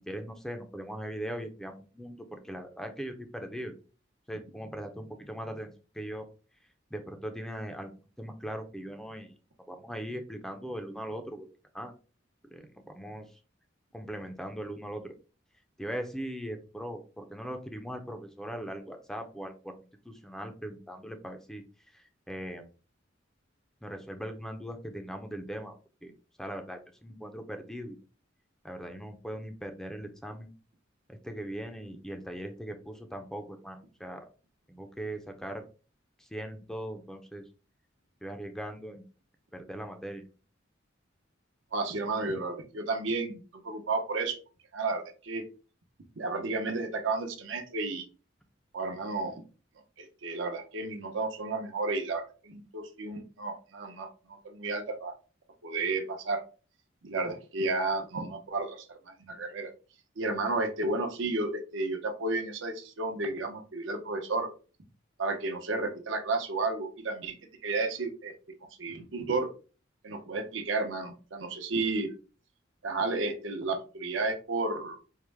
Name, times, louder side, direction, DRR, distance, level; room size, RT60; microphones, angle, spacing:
voice 1, 0.1-3.7 4.3-6.3 6.9-9.3 9.7-11.5 11.7-11.9 12.5-13.4 13.9-15.1 15.8-19.8 20.0-22.7 23.8-25.8 26.0-26.1 26.4-28.0 28.6-30.5 31.1-34.3 34.7-35.6 36.2-37.5 38.2-39.0 39.5-40.2, equal, 5° left, 5 dB, 0.4 m, -40 dB
voice 2, 41.7-44.4 44.7-45.4 46.2-48.1 48.7-49.4 50.0-55.1 55.6-56.4 57.0-59.7 60.2-64.5 65.2-67.4 67.6-68.3 68.8-69.5 70.0-72.1 72.8-75.0, right 3 dB, 85° right, 5 dB, 0.8 m, -32 dB
4.5 x 2.1 x 3.3 m, 0.35 s
head